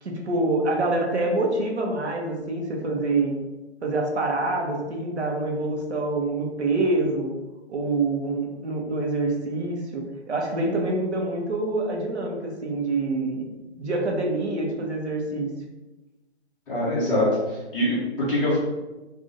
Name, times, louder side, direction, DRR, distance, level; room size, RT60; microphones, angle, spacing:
voice 1, 0.0-3.4 3.8-7.3 7.7-13.5 13.8-15.5, right 2 dB, 70° right, 1 dB, 1.2 m, -26 dB
voice 2, 16.7-18.6, left 1 dB, ahead, -16 dB, 0.6 m, -24 dB
3.4 x 2.7 x 3.8 m, 1.1 s
hypercardioid pair, 160°, 34 cm